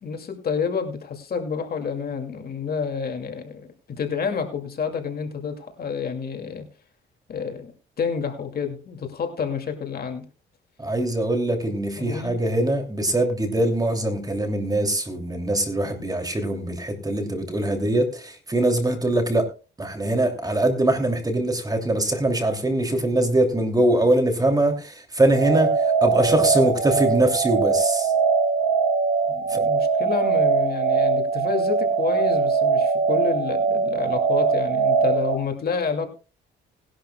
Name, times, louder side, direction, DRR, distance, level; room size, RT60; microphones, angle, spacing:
voice 1, 0.0-6.7 7.3-7.7 8.0-10.2 12.0-12.4 29.3-36.1, left 6 dB, 50° left, 2.4 m, -29 dB
voice 2, 10.8-19.5 19.8-28.1 29.5-29.6, right 1 dB, 20° right, 2.8 m, -22 dB
sound 1, 25.3-35.4, right 5 dB, 75° right, 2.6 m, -21 dB
19.5 x 11.5 x 2.3 m
cardioid pair, 90°, 20 cm